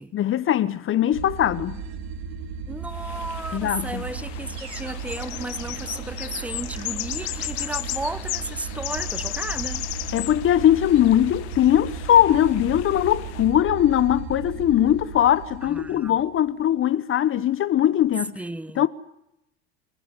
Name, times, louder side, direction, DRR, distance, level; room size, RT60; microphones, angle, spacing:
voice 1, 0.1-1.8 3.5-4.0 10.1-18.4 18.7-18.9, left 11 dB, 40° left, 1.1 m, -20 dB
sound 1, 1.1-16.5, right 5 dB, 70° right, 2.7 m, -35 dB
voice 2, 2.7-9.9 15.7-16.2 18.4-18.9, right 2 dB, 5° right, 0.9 m, -34 dB
sound 2, 2.9-13.5, left 18 dB, 70° left, 1.6 m, -35 dB
25.0 x 15.5 x 10.0 m
hypercardioid pair, 85°, 34 cm